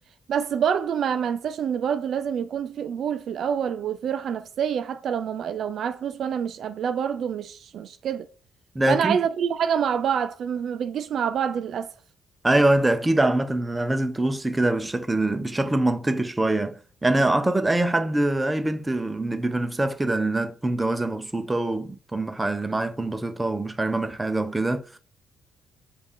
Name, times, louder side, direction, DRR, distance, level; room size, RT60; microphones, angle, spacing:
voice 1, 0.3-8.3 8.9-11.9, right 8 dB, 65° right, 0.3 m, -26 dB
voice 2, 8.7-9.2 12.4-25.0, right 2 dB, 15° right, 0.5 m, -24 dB
5.2 x 2.5 x 3.7 m
cardioid pair, 90°, 0 cm